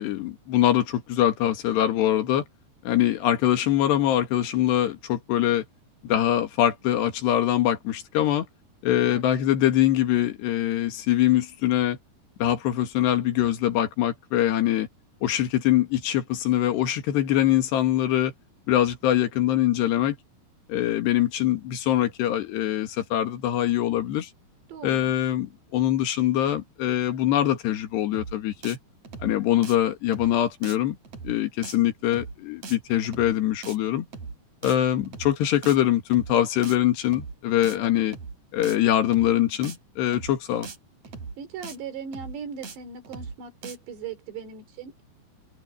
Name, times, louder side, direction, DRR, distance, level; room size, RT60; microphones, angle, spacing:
voice 1, 0.0-2.4 2.9-5.7 6.0-8.5 8.8-12.0 12.4-14.9 15.2-18.3 18.7-20.2 20.7-24.3 24.8-28.8 29.2-31.0 31.2-34.1 34.6-38.2 38.5-40.7, left 12 dB, 80° left, 4.2 m, -23 dB
voice 2, 24.7-25.1 41.4-45.0, right 6 dB, 85° right, 5.9 m, -38 dB
sound 1, 28.1-28.4 28.6-28.8 29.0-29.4 29.6-29.8 30.1-30.4 30.6-30.8 31.0-31.4 31.6-31.8 32.1-32.4 32.6-32.8 33.0-33.4 33.6-33.8 34.1-34.4 34.6-34.8 35.0-35.4 35.6-35.8 36.1-36.4 36.6-36.8 37.0-37.4 37.6-37.8 38.1-38.4 38.6-38.8 39.0-39.4 39.6-39.8 40.1-40.4 40.6-40.8 41.0-41.4 41.6-41.8 42.1-42.4 42.6-42.8 43.0-43.4 43.6-43.8, right 4 dB, 45° right, 4.8 m, -39 dB
open air
omnidirectional pair, 4.8 m